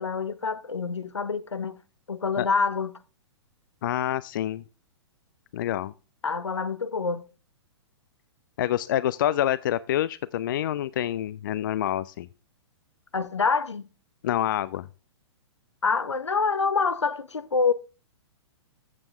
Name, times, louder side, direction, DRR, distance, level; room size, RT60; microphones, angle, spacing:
voice 1, 0.0-1.8 2.1-2.9 6.2-7.2 13.1-13.9 15.8-17.7, left 5 dB, 75° left, 0.8 m, -26 dB
voice 2, 3.8-4.6 5.5-5.9 8.6-12.3 14.2-14.9, left 12 dB, 45° left, 0.4 m, -27 dB
13.5 x 7.5 x 3.4 m
figure-of-eight pair, 110°, 15 cm